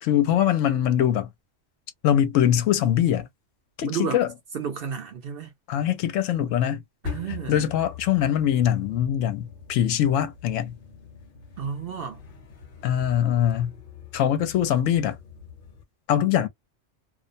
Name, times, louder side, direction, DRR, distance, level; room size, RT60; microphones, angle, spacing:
voice 1, 0.0-1.3 2.0-3.3 3.8-4.3 5.7-6.8 7.5-10.8 12.8-13.7 14.1-15.2 16.1-16.5, left 10 dB, 80° left, 0.9 m, -22 dB
voice 2, 3.8-4.2 4.5-5.5 7.0-7.7 11.6-12.2, right 7 dB, 55° right, 0.7 m, -32 dB
sound 1, 7.0-15.8, left 6 dB, 50° left, 0.9 m, -42 dB
2.5 x 2.0 x 2.5 m
omnidirectional pair, 1.3 m